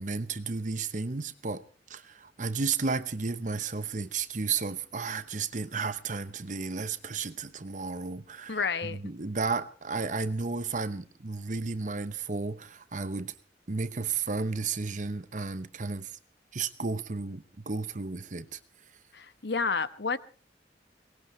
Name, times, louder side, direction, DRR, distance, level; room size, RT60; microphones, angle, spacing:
voice 1, 0.0-1.6 1.9-13.3 13.7-16.2 16.5-18.6, right 4 dB, 45° right, 0.9 m, -33 dB
voice 2, 8.5-9.0 19.1-20.2, left 5 dB, 70° left, 1.1 m, -30 dB
23.0 x 19.0 x 3.2 m
head